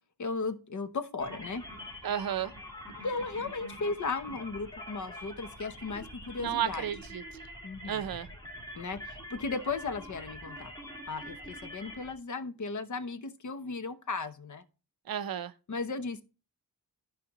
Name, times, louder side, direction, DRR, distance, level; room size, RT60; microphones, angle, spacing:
voice 1, 0.2-1.6 3.0-6.9 7.6-8.0 8.8-10.7 11.1-14.6 15.7-16.2, left 4 dB, 50° left, 0.9 m, -36 dB
sound 1, 1.2-12.1, equal, 10° left, 2.8 m, -45 dB
voice 2, 2.0-2.5 6.4-7.2 7.9-8.3 15.1-15.5, right 9 dB, 65° right, 0.7 m, -32 dB
14.5 x 5.0 x 2.9 m
wide cardioid pair, 170°, 38 cm